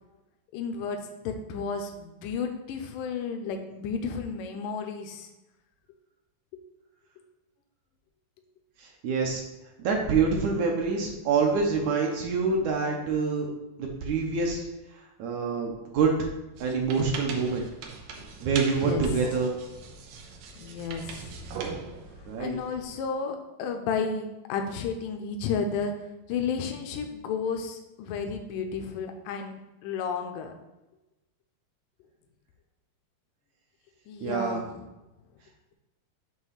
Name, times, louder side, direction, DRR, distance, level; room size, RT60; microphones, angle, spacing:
voice 1, 0.5-5.3 6.5-6.6 18.8-19.0 20.6-21.4 22.4-25.9 26.3-30.5 34.1-34.8, left 5 dB, 85° left, 4 dB, 2.2 m, -32 dB
voice 2, 8.8-9.4 9.8-13.5 13.8-14.7 15.2-16.1 16.6-17.6 18.4-19.6 22.3-22.6 34.2-34.6, right 5 dB, 70° right, 1 dB, 1.9 m, -26 dB
sound 1, 16.6-22.9, right 5 dB, 85° right, 2.5 m, -40 dB
8.1 x 3.0 x 5.6 m, 0.99 s
omnidirectional pair, 3.8 m